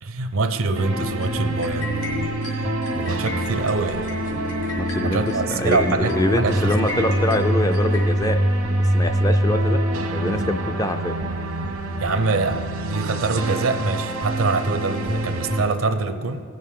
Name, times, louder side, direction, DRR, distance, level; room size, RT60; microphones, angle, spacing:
voice 1, 0.0-4.1 5.0-7.1 11.9-16.4, right 3 dB, 70° right, 9 dB, 0.6 m, -25 dB
sound 1, 0.7-15.6, right 1 dB, 85° right, 1.1 m, -25 dB
sound 2, 0.8-8.1, left 3 dB, 70° left, 2.4 m, -33 dB
voice 2, 4.8-5.2 5.5-8.4 8.8-9.8 10.1-11.2, left 1 dB, 15° left, 8 dB, 0.3 m, -24 dB
16.5 x 6.6 x 3.7 m, 2.1 s
head